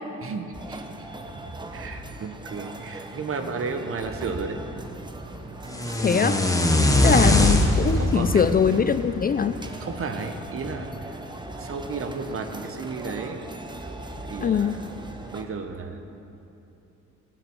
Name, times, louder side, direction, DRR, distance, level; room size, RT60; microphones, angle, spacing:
voice 1, 0.2-1.1 1.7-4.6 6.7-7.3 7.9-8.5 9.4-9.5 9.8-11.2 11.6-13.4 14.3-15.0 15.3-16.0, right 4 dB, 45° right, 6 dB, 1.1 m, -33 dB
sound 1, 0.5-15.4, right 2 dB, 15° right, 1.0 m, -39 dB
sound 2, 5.7-9.8, left 1 dB, 10° left, 1.1 m, -22 dB
voice 2, 6.0-6.4 7.0-9.6 14.4-14.8, left 7 dB, 30° left, 11 dB, 0.4 m, -22 dB
17.5 x 7.7 x 4.7 m, 2.9 s
cardioid pair, 90°, 30 cm